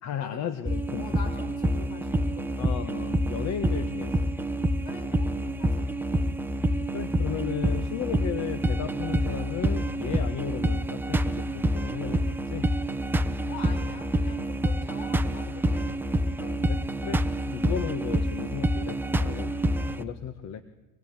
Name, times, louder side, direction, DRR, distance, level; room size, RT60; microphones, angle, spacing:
voice 1, 0.0-1.2 2.6-4.3 6.6-12.7 16.4-17.2 17.5-19.5 19.9-20.6, left 8 dB, 35° left, 11 dB, 1.5 m, -35 dB
sound 1, 0.7-20.0, right 1 dB, 5° right, 0.9 m, -27 dB
voice 2, 1.0-2.7 4.8-5.7 13.5-15.9, left 4 dB, 55° left, 7 dB, 6.8 m, -44 dB
25.0 x 21.0 x 9.1 m, 1.1 s
supercardioid pair, 135°, 44 cm